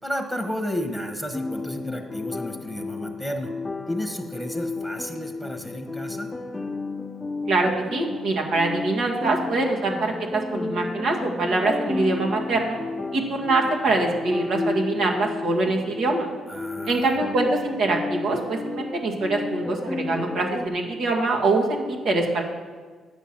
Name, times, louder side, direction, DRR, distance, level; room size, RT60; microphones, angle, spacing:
voice 1, 0.0-3.5 3.9-6.3 16.5-17.1, equal, 10° right, 5 dB, 1.2 m, -32 dB
sound 1, 1.3-20.7, left 3 dB, 20° left, 0.5 m, -32 dB
voice 2, 7.5-12.8 13.1-16.3 16.8-22.4, right 2 dB, 75° right, 0 dB, 1.7 m, -24 dB
9.3 x 6.9 x 6.0 m, 1.5 s
cardioid pair, 90°, 0 cm